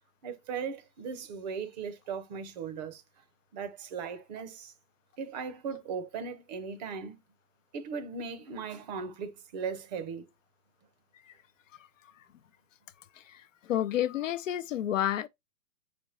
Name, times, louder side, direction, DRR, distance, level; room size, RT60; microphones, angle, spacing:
voice 1, 0.2-3.0 3.5-4.7 5.2-7.2 7.7-10.3, right 6 dB, 30° right, 0.7 m, -38 dB
voice 2, 13.1-15.3, left 11 dB, 60° left, 0.6 m, -30 dB
5.1 x 4.6 x 4.2 m
hypercardioid pair, 140°, 45 cm